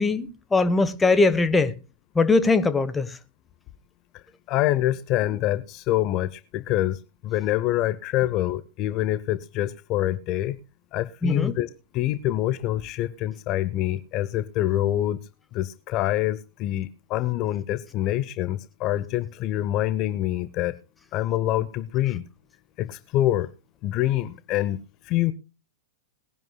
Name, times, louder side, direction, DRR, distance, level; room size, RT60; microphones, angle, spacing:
voice 1, 0.0-1.7 2.1-3.1 11.2-11.6, left 3 dB, 15° left, 1.3 m, -21 dB
voice 2, 4.5-7.0 7.2-10.6 10.9-15.2 15.5-20.7 21.1-22.2 22.8-23.5 23.8-24.8 25.1-25.3, left 14 dB, 45° left, 0.8 m, -25 dB
21.0 x 10.5 x 2.3 m
hypercardioid pair, 100°, 0 cm